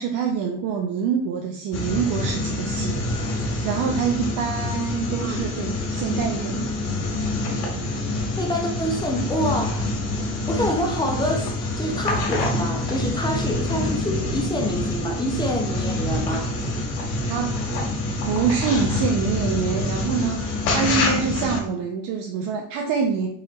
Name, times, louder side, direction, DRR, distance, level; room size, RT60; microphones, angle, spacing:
voice 1, 0.0-3.0 3.6-6.8 17.3-17.5 18.3-23.3, right 6 dB, 60° right, 2 dB, 0.7 m, -25 dB
sound 1, 1.7-21.6, left 2 dB, 90° left, 1.5 m, -26 dB
voice 2, 8.4-9.9 10.5-16.5, equal, 10° left, 3 dB, 0.4 m, -27 dB
4.0 x 2.9 x 4.1 m, 0.63 s
cardioid pair, 145°, 38 cm